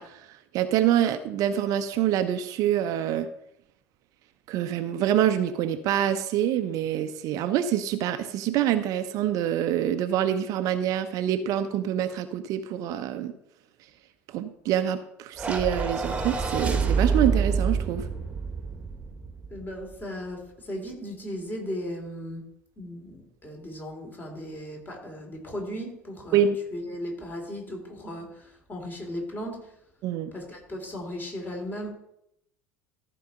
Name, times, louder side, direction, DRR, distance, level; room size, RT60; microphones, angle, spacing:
voice 1, 0.0-3.3 4.5-13.3 14.3-18.1 26.3-26.6 30.0-30.3, right 10 dB, 50° right, 10 dB, 0.7 m, -26 dB
sound 1, 15.4-19.8, right 5 dB, 15° right, 1.5 m, -27 dB
voice 2, 19.5-22.5 22.8-29.7 30.3-31.9, equal, 25° left, 1 dB, 3.8 m, -36 dB
14.0 x 4.7 x 5.4 m, 0.76 s
figure-of-eight pair, 70°, 8 cm